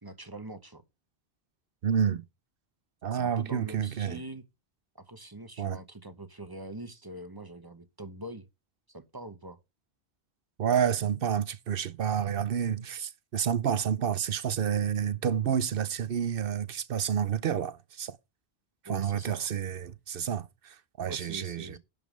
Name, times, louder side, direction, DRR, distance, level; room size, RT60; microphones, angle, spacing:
voice 1, 0.0-0.8 3.1-4.4 4.9-8.5 8.9-9.6 18.8-19.5 21.1-21.8, right 1 dB, 20° right, 0.9 m, -43 dB
voice 2, 1.8-2.2 3.0-4.2 5.6-5.8 10.6-18.2 18.8-21.8, right 8 dB, 60° right, 0.9 m, -29 dB
11.5 x 5.3 x 5.2 m
omnidirectional pair, 1.1 m